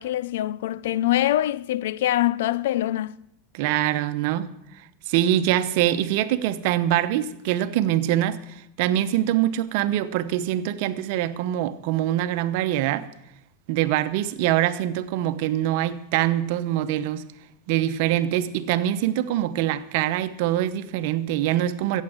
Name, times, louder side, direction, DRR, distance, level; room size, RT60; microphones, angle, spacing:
voice 1, 0.0-3.1, left 14 dB, 75° left, 0.4 m, -24 dB
voice 2, 3.5-4.5 5.1-13.1 13.7-17.2 17.7-22.0, right 12 dB, 65° right, 0.9 m, -24 dB
14.5 x 8.4 x 7.9 m
hypercardioid pair, 105°, 0 cm